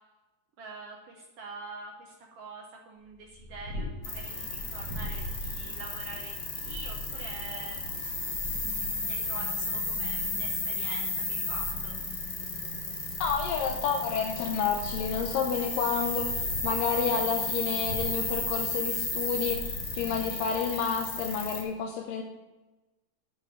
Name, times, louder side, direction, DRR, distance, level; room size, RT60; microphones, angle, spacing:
voice 1, 0.6-7.8 8.5-12.0, right 3 dB, 65° right, 0 dB, 1.6 m, -45 dB
Purr, 3.1-20.8, left 1 dB, 50° right, 3.0 m, -42 dB
sound 1, 4.0-21.6, left 3 dB, 35° left, 1.2 m, -33 dB
voice 2, 13.2-22.2, left 6 dB, 85° left, 2 dB, 2.4 m, -30 dB
9.9 x 5.7 x 5.9 m, 1.1 s
omnidirectional pair, 3.9 m